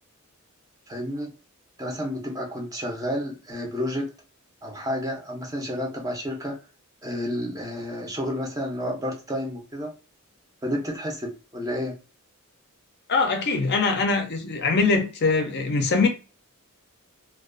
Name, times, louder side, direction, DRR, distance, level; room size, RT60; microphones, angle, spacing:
voice 1, 0.9-1.3 1.8-4.1 4.6-6.6 7.0-9.9 10.6-12.0, equal, 15° right, 0.5 m, -30 dB
voice 2, 13.1-16.1, left 4 dB, 50° left, 0.4 m, -22 dB
2.4 x 2.2 x 2.4 m
head